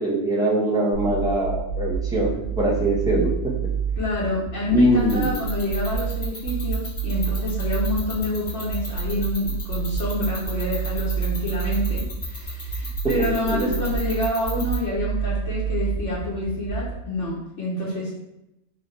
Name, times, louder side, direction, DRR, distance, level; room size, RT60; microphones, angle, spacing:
voice 1, 0.0-2.3 2.5-3.3 4.7-5.3 13.5-13.7, right 1 dB, 5° right, -6 dB, 0.9 m, -21 dB
sound 1, 0.9-16.9, right 6 dB, 75° right, 1.1 m, -28 dB
voice 2, 4.0-18.1, left 1 dB, 80° left, -8 dB, 1.4 m, -27 dB
sound 2, 5.1-14.7, left 3 dB, 60° left, 1.5 m, -34 dB
3.4 x 2.8 x 4.1 m, 0.87 s
omnidirectional pair, 1.2 m